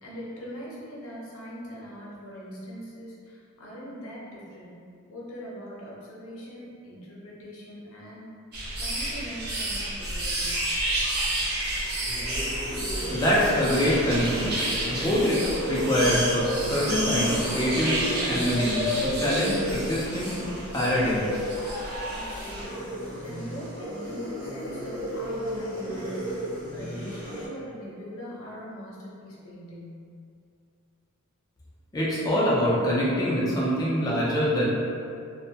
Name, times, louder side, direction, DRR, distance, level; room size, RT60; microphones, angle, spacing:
voice 1, 0.0-4.8 5.1-8.3 8.7-10.6 22.1-26.4 26.7-30.0, equal, 70° left, -6 dB, 0.7 m, -41 dB
sound 1, 8.5-22.6, right 1 dB, 50° right, 0.6 m, -31 dB
sound 2, 11.8-27.5, equal, 15° right, 0.7 m, -34 dB
voice 2, 13.1-20.3 20.7-21.6 31.9-34.7, equal, 15° left, -7 dB, 0.4 m, -25 dB
2.5 x 2.1 x 2.7 m, 2.4 s
head